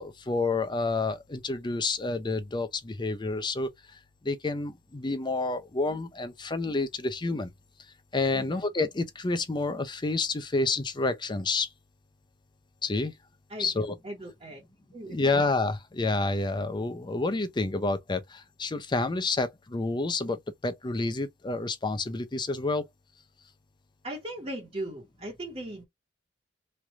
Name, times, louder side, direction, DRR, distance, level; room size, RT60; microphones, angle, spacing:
voice 1, 0.0-7.5 8.1-11.7 12.8-13.1 13.6-14.0 15.0-22.9, left 3 dB, 25° left, 0.5 m, -29 dB
voice 2, 13.5-14.6 14.9-15.3 24.0-25.8, right 1 dB, 35° right, 1.2 m, -38 dB
3.2 x 2.5 x 2.8 m
head